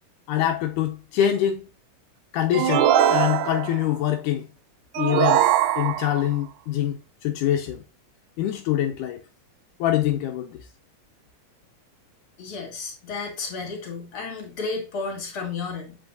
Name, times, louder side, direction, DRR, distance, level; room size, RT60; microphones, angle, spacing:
voice 1, 0.3-1.7 2.3-4.5 5.0-5.4 5.8-7.8 8.4-9.2 9.8-10.6, left 11 dB, 85° left, 2.2 m, -24 dB
sound 1, 2.5-3.9 4.9-6.3, right 10 dB, 85° right, 2.0 m, -21 dB
voice 2, 12.4-16.0, left 4 dB, 45° left, 2.8 m, -32 dB
7.7 x 5.5 x 2.6 m
omnidirectional pair, 3.6 m